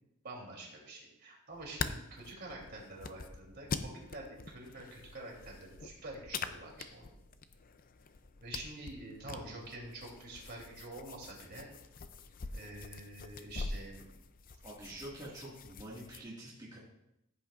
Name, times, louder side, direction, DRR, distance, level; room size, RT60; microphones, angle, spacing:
voice 1, 0.2-7.1 8.4-11.7 12.5-14.1, right 2 dB, 50° right, -2 dB, 3.2 m, -47 dB
sound 1, 1.5-16.2, left 4 dB, 40° left, 0.5 m, -44 dB
voice 2, 14.6-16.8, right 1 dB, 20° right, -7 dB, 2.0 m, -46 dB
15.0 x 8.4 x 2.5 m, 0.85 s
head